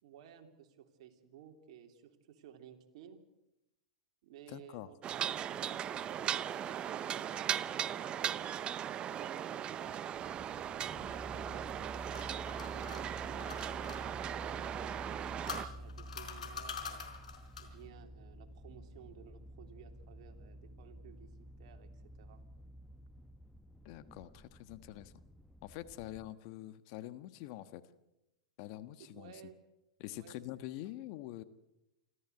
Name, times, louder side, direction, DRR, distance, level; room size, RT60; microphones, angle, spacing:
voice 1, 0.0-3.2 4.2-5.1 5.5-8.2 9.0-10.0 10.6-12.0 12.7-15.0 15.7-17.1 17.6-21.3 21.6-22.4 29.1-29.6 30.0-30.4, right 9 dB, 60° right, 5 dB, 3.2 m, -56 dB
voice 2, 4.5-4.9 23.8-25.1 25.6-27.8 28.6-29.3 30.0-31.4, left 15 dB, 50° left, 13 dB, 1.3 m, -45 dB
sound 1, 5.0-15.7, right 9 dB, 30° right, 0.8 m, -38 dB
sound 2, 10.1-26.3, equal, 5° left, 1.0 m, -50 dB
sound 3, 11.7-14.0 15.0-17.8, left 6 dB, 90° left, 4.4 m, -45 dB
27.5 x 14.0 x 8.1 m, 0.93 s
hypercardioid pair, 120°, 4 cm